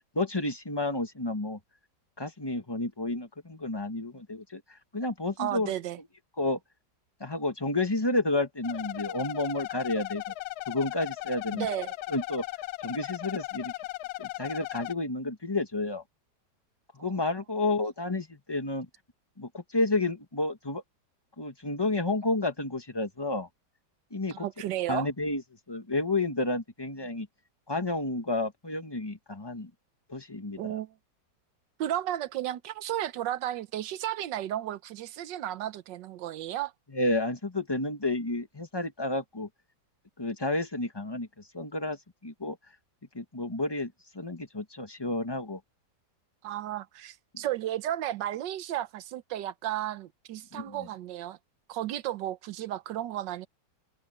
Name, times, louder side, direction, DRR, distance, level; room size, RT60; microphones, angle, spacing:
voice 1, 0.1-1.6 2.2-4.6 4.9-5.7 6.4-6.6 7.2-10.2 10.7-11.7 12.1-12.4 12.8-13.7 14.2-16.0 16.9-18.9 19.4-20.8 21.4-23.5 24.1-24.5 24.9-25.4 25.7-27.3 27.7-29.7 30.1-30.8 36.9-39.5 40.2-41.3 41.5-42.0 42.2-42.6 43.1-45.6 50.5-50.9, left 2 dB, 15° left, 1.4 m, -30 dB
voice 2, 5.4-6.0 11.5-11.9 17.0-17.2 24.3-25.1 30.6-30.9 31.8-36.7 46.4-51.4 51.7-53.5, right 12 dB, 90° right, 1.4 m, -33 dB
sound 1, 8.6-14.9, left 16 dB, 70° left, 1.0 m, -37 dB
omnidirectional pair, 1.9 m